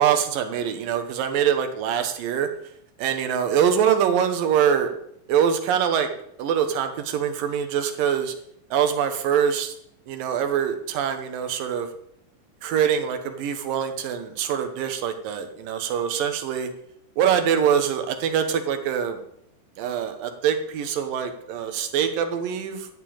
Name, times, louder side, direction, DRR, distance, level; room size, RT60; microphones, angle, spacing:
voice 1, 0.0-2.5 3.0-4.9 5.3-6.1 6.4-8.3 8.7-9.7 10.1-11.9 12.6-16.7 17.2-19.2 19.8-22.9, right 8 dB, 85° right, 7 dB, 2.9 m, -24 dB
14.0 x 5.2 x 8.8 m, 0.72 s
omnidirectional pair, 3.9 m